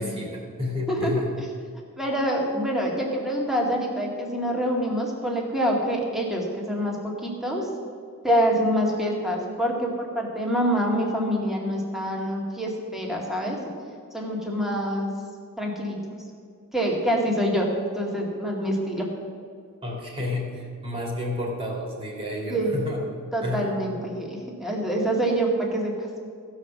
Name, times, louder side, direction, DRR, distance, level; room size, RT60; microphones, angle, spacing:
voice 1, 0.0-1.3 19.8-23.0 23.4-23.7, left 2 dB, 25° right, -1 dB, 2.5 m, -31 dB
voice 2, 2.0-7.7 8.2-13.6 14.1-15.1 15.6-16.0 16.7-17.7 18.0-19.1 22.5-22.8 23.3-26.1, equal, ahead, -2 dB, 2.0 m, -26 dB
15.5 x 5.7 x 7.2 m, 2.1 s
head